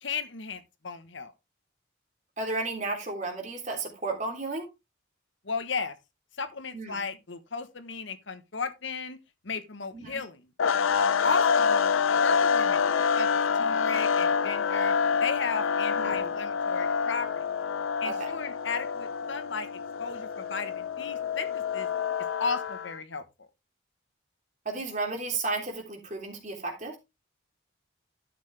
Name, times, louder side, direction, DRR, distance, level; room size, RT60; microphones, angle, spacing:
voice 1, 0.0-1.3 5.4-5.9 6.4-9.2 9.4-10.4 11.2-11.9 12.2-13.3 13.5-14.9 15.2-17.4 18.0-19.7 20.0-21.9 22.4-23.5, left 5 dB, 70° left, 1.2 m, -34 dB
voice 2, 2.4-4.7 6.7-7.1 9.9-10.2 16.0-16.3 18.0-18.3 24.6-27.0, right 3 dB, 35° right, 3.4 m, -33 dB
sound 1, 10.6-23.0, left 6 dB, 90° left, 0.5 m, -27 dB
12.5 x 6.8 x 3.3 m
head